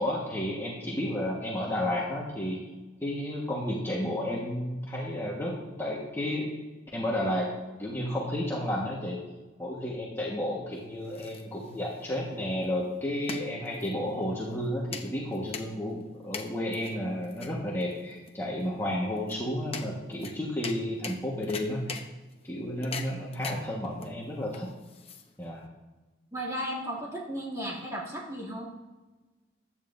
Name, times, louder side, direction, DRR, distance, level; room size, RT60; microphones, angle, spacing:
voice 1, 0.0-2.6 3.0-6.5 6.9-7.5 7.8-9.2 9.6-22.0 22.4-24.7 25.4-25.6, left 1 dB, 15° left, -4 dB, 1.5 m, -32 dB
sound 1, 10.7-25.6, left 5 dB, 30° left, 0.8 m, -43 dB
voice 2, 26.3-28.7, equal, 15° right, -5 dB, 2.5 m, -35 dB
15.0 x 10.5 x 2.7 m, 1.2 s
head